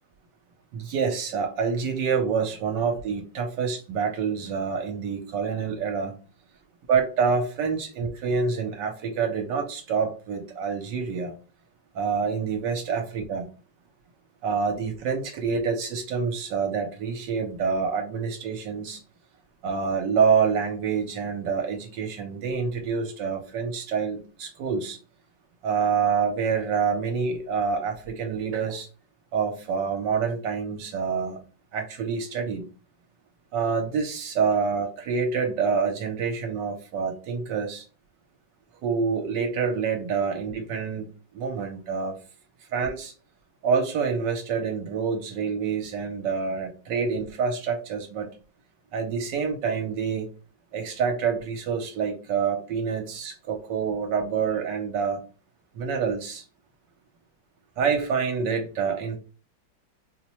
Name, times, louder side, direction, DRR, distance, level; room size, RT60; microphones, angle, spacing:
voice 1, 0.7-6.1 6.9-11.3 11.9-13.4 14.4-19.0 19.6-25.0 25.6-28.9 29.3-31.4 31.7-32.6 33.5-37.8 38.8-42.2 42.7-43.1 43.6-48.3 48.9-50.3 50.7-55.2 55.7-56.4 57.8-59.2, right 6 dB, 80° right, 1.3 m, -27 dB
4.4 x 2.1 x 2.9 m
omnidirectional pair, 1.9 m